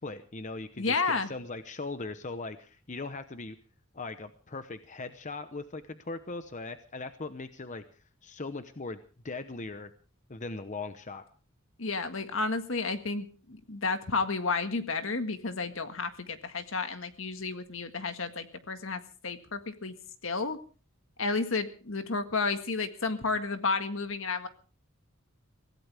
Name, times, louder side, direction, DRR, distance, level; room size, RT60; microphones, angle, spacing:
voice 1, 0.0-3.6 3.9-7.8 8.2-9.0 9.2-9.9 10.3-11.3, left 3 dB, 35° left, 10 dB, 0.9 m, -39 dB
voice 2, 0.8-1.3 11.8-20.0 20.2-20.6 21.2-24.5, left 4 dB, 65° left, 8 dB, 1.8 m, -31 dB
24.0 x 16.0 x 3.5 m, 0.38 s
head